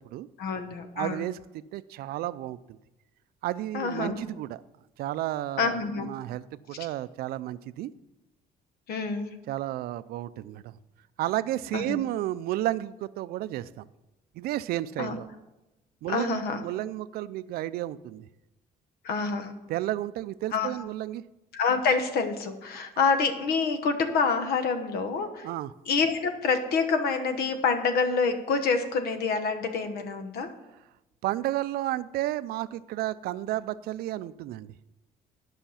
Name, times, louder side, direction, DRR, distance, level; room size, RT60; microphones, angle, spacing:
voice 1, 0.4-1.2 3.7-4.2 5.6-6.1 8.9-9.3 11.7-12.0 15.0-15.2 16.1-16.6 19.0-19.5 20.5-20.7 21.5-25.5 25.9-30.5, left 5 dB, 75° left, 8 dB, 1.2 m, -27 dB
voice 2, 1.0-2.8 3.4-4.6 5.0-7.9 9.5-10.7 11.2-13.9 14.4-15.3 16.0-18.3 19.7-21.2 25.4-25.7 31.2-34.7, right 14 dB, 75° right, 16 dB, 0.4 m, -32 dB
11.5 x 5.7 x 5.7 m, 0.98 s
cardioid pair, 140°, 16 cm